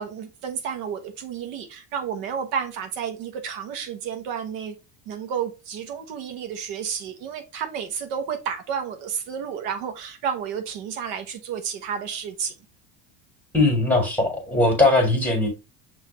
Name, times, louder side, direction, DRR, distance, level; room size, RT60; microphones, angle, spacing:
voice 1, 0.0-4.7 5.1-12.5, right 7 dB, 70° right, 0.9 m, -31 dB
voice 2, 13.5-15.5, left 2 dB, 5° left, 1.7 m, -20 dB
5.7 x 2.6 x 3.0 m
supercardioid pair, 100°, 45 cm